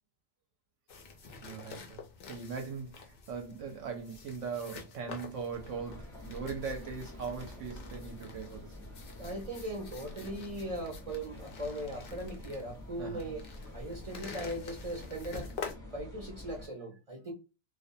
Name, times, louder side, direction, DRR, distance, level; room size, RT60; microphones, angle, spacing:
sound 1, 0.9-15.7, left 5 dB, 65° left, 0.5 m, -48 dB
voice 1, 1.4-2.0 2.3-8.9 13.0-13.3, right 5 dB, 70° right, 0.8 m, -40 dB
sound 2, 5.5-16.7, left 1 dB, 5° left, 0.7 m, -47 dB
voice 2, 9.2-13.4 13.7-15.5 15.9-17.3, right 1 dB, 50° right, 0.4 m, -39 dB
2.4 x 2.1 x 2.6 m
omnidirectional pair, 1.5 m